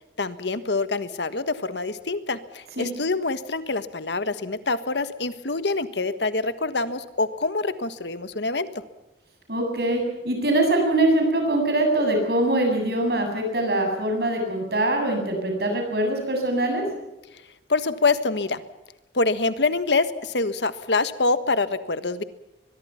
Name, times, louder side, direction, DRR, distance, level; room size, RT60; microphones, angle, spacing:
voice 1, 0.2-8.7 17.7-18.6 19.1-22.2, left 3 dB, 85° left, 12 dB, 1.5 m, -25 dB
voice 2, 9.5-16.8, right 1 dB, 65° right, 3 dB, 8.0 m, -23 dB
23.5 x 21.5 x 5.8 m, 1.0 s
head